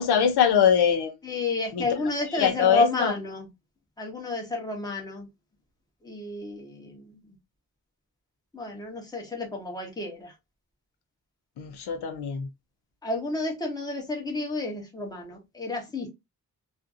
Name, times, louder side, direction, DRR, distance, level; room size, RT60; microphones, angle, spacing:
voice 1, 0.0-1.1 1.7-1.8 2.3-3.1 11.6-12.5, left 8 dB, 85° left, 0.6 m, -22 dB
voice 2, 1.2-3.5 4.0-5.3 6.0-7.4 8.5-10.3 13.0-16.1, left 2 dB, 10° left, 0.8 m, -31 dB
2.5 x 2.5 x 2.4 m
wide cardioid pair, 175°, 38 cm